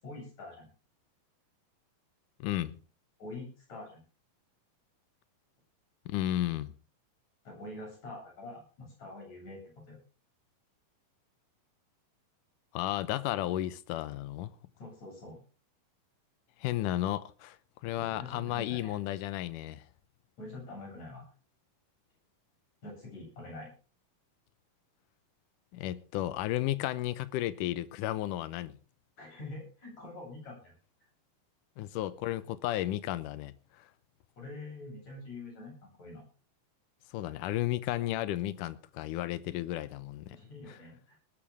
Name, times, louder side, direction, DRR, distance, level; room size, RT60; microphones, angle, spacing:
voice 1, 0.0-0.7 3.2-4.0 7.4-10.0 14.8-15.4 18.0-19.0 20.4-21.2 22.8-23.7 29.2-30.7 34.4-36.2 40.3-41.2, left 2 dB, 50° left, 9.3 m, -45 dB
voice 2, 2.4-2.8 6.1-6.7 12.7-14.5 16.6-17.6 17.8-19.8 25.7-28.8 31.8-33.8 37.1-40.3 40.7-40.8, left 14 dB, 75° left, 2.2 m, -33 dB
19.0 x 14.0 x 3.5 m
omnidirectional pair, 4.2 m